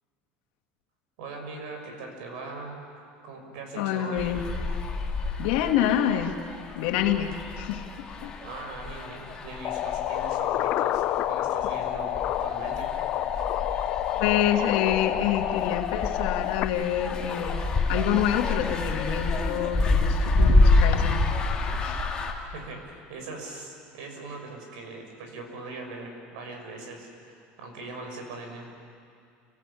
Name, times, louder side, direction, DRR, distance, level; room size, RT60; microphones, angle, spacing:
voice 1, 1.2-2.8 3.2-4.3 8.4-12.9 22.5-28.7, right 3 dB, 80° right, 3 dB, 6.7 m, -40 dB
voice 2, 3.8-4.4 5.4-6.4 6.8-8.3 14.2-21.3 21.8-22.1, left 10 dB, 75° left, 4 dB, 2.4 m, -27 dB
sound 1, 4.2-22.3, left 2 dB, 20° left, 2.6 m, -28 dB
sound 2, 9.6-16.6, left 13 dB, 40° left, 0.8 m, -28 dB
29.5 x 19.5 x 8.7 m, 2.3 s
cardioid pair, 170°, 5 cm